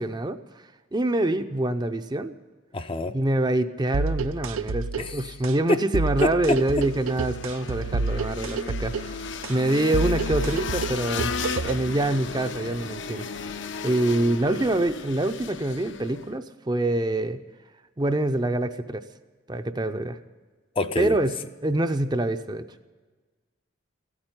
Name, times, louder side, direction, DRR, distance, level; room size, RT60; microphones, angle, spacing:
voice 1, 0.0-2.3 3.1-9.2 9.5-11.3 11.6-13.3 13.8-17.4 18.0-19.0 19.5-20.2 21.0-21.4 21.6-22.6, right 1 dB, 20° right, 9 dB, 0.5 m, -25 dB
voice 2, 2.7-3.1 5.0-5.2 5.7-5.8 6.2-6.6 20.8-21.1, left 2 dB, 25° left, 9 dB, 0.5 m, -25 dB
sound 1, 3.9-11.9, right 4 dB, 90° right, 0.6 m, -30 dB
sound 2, 6.5-16.3, left 5 dB, 65° left, 0.7 m, -35 dB
15.0 x 8.8 x 9.6 m, 1.4 s
head